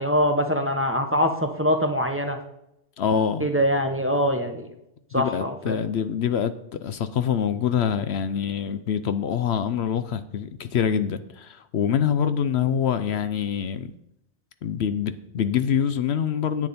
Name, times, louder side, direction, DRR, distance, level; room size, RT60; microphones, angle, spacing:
voice 1, 0.0-2.4 3.4-4.7 5.1-5.8, equal, 10° right, 0.9 m, -23 dB
voice 2, 3.0-3.5 5.1-13.9 14.6-16.7, left 8 dB, 70° left, 0.8 m, -25 dB
10.0 x 8.5 x 4.2 m
omnidirectional pair, 1.2 m